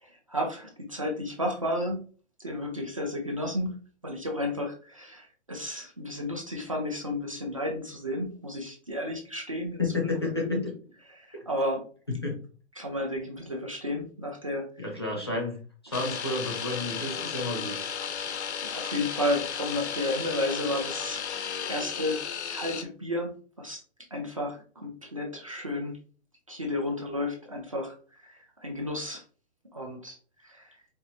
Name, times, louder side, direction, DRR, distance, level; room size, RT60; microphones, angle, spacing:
voice 1, 0.0-2.0 2.4-3.8 4.0-9.8 10.2-10.6 11.1-11.8 12.8-14.9 18.6-21.2 21.7-23.8 24.1-26.0 26.5-29.2 29.7-30.2 30.4-30.8, left 1 dB, 30° right, 0 dB, 0.5 m, -32 dB
voice 2, 9.8-10.7 11.3-11.4 12.1-12.4 14.8-15.6 15.8-17.9, left 2 dB, 25° left, -1 dB, 0.5 m, -31 dB
sound 1, 15.9-22.8, left 7 dB, 75° left, 0.6 m, -34 dB
4.5 x 2.5 x 2.6 m, 0.40 s
hypercardioid pair, 180°, 34 cm